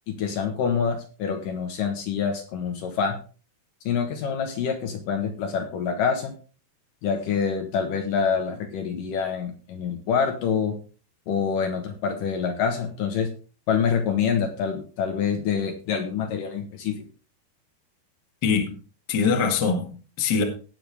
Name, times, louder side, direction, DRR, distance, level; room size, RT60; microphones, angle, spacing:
voice 1, 0.1-3.2 3.9-6.3 7.0-10.8 11.3-13.3 13.7-17.1, left 6 dB, 65° left, 5 dB, 2.5 m, -26 dB
voice 2, 18.4-18.7 19.1-20.4, left 5 dB, 40° left, 3 dB, 1.5 m, -23 dB
18.5 x 6.9 x 3.4 m, 0.37 s
omnidirectional pair, 4.8 m